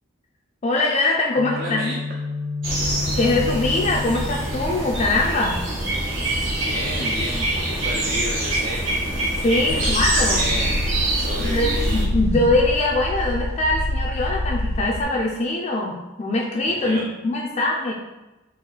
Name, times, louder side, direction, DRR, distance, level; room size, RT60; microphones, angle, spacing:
voice 1, 0.6-1.9 3.1-5.6 9.4-10.5 11.4-17.9, left 2 dB, 30° left, -2 dB, 0.4 m, -22 dB
Guitar, 1.4-9.2, left 3 dB, 25° right, 1.0 m, -33 dB
voice 2, 1.5-2.0 6.2-8.9 9.7-12.0 16.8-17.0, right 1 dB, 45° right, -2 dB, 0.5 m, -32 dB
sound 1, 2.6-12.0, right 1 dB, 70° right, 1.2 m, -25 dB
sound 2, 9.7-15.0, left 1 dB, 90° left, 0.5 m, -26 dB
4.4 x 3.0 x 3.9 m, 1.1 s
head